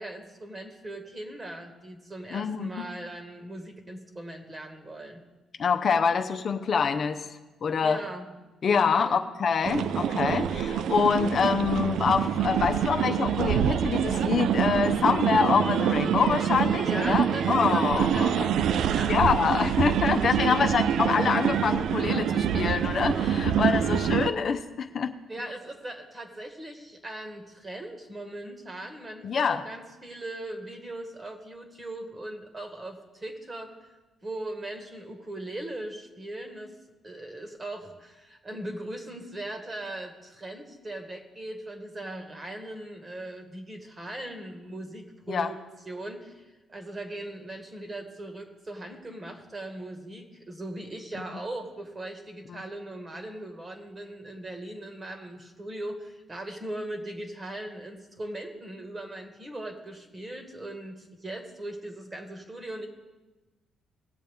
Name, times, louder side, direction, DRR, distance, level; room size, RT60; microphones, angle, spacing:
voice 1, 0.0-5.2 7.8-8.3 8.8-9.3 16.9-19.1 20.4-20.7 25.3-33.7 34.2-36.8 37.0-45.6 45.9-46.4 46.7-62.9, right 1 dB, 25° right, 4 dB, 1.7 m, -39 dB
voice 2, 2.3-2.9 5.6-7.3 7.6-8.0 8.6-18.5 19.1-25.1 29.2-29.6 45.3-45.5 52.5-52.6, left 6 dB, 50° left, 6 dB, 0.7 m, -26 dB
sound 1, 9.6-24.3, right 9 dB, 75° right, 0.4 m, -26 dB
18.0 x 7.5 x 3.6 m, 1.1 s
cardioid pair, 90°, 0 cm